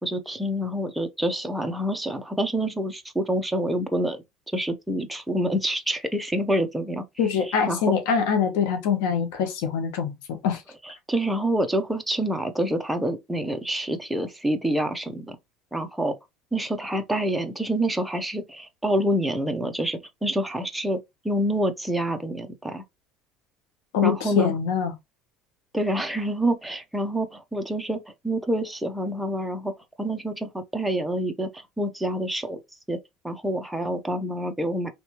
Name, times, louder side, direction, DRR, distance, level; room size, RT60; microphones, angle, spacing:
voice 1, 0.0-4.2 4.5-7.0 7.7-8.0 11.1-15.4 15.7-16.2 16.5-21.0 21.2-22.8 24.0-24.5 25.7-29.7 30.0-32.6 32.9-33.0 33.2-34.9, right 1 dB, 5° right, 0.6 m, -27 dB
voice 2, 7.2-10.6 23.9-24.9, left 7 dB, 85° left, 1.1 m, -24 dB
3.3 x 3.0 x 2.9 m
cardioid pair, 125°, 0 cm